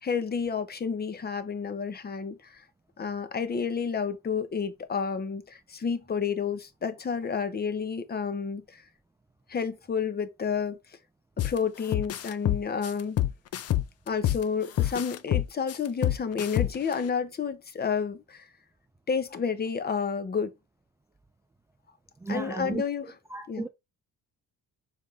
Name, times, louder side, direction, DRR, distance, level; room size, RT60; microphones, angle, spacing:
voice 1, 0.0-2.7 3.0-8.8 9.5-11.0 11.4-13.2 14.1-18.5 19.1-20.5 22.3-23.0 23.5-23.7, left 6 dB, 30° left, 0.9 m, -30 dB
sound 1, 11.4-11.6 11.9-14.4 14.8-16.9, left 13 dB, 45° left, 0.6 m, -26 dB
voice 2, 22.2-22.8 23.3-23.7, right 3 dB, 10° right, 0.4 m, -33 dB
7.0 x 5.4 x 3.3 m
cardioid pair, 155°, 34 cm